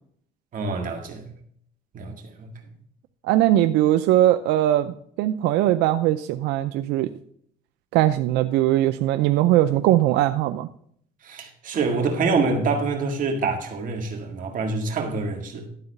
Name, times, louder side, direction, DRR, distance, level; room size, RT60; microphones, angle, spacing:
voice 1, 0.5-1.3 1.9-2.5 11.2-15.7, right 4 dB, 50° right, 1.9 m, -26 dB
voice 2, 3.2-7.1 7.9-10.7, right 13 dB, 90° right, 0.5 m, -20 dB
12.0 x 4.0 x 6.5 m
cardioid pair, 110°, 17 cm